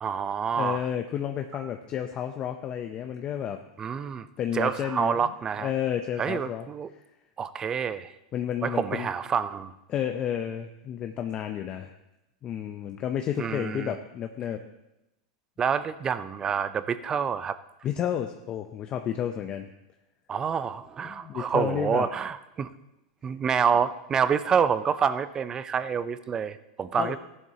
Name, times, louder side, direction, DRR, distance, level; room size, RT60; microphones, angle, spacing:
voice 1, 0.0-0.8 3.8-4.3 4.5-5.7 6.2-6.9 7.4-8.1 8.6-9.7 13.4-13.9 15.6-17.6 20.3-22.7 23.2-27.2, right 7 dB, 20° right, 14 dB, 0.5 m, -27 dB
voice 2, 0.6-3.6 4.4-5.3 5.6-6.7 8.3-9.1 9.9-11.9 12.4-14.6 17.8-19.7 21.0-22.1 27.0-27.2, left 9 dB, 30° left, 5 dB, 0.6 m, -31 dB
14.5 x 11.0 x 2.8 m, 0.94 s
supercardioid pair, 130°, 3 cm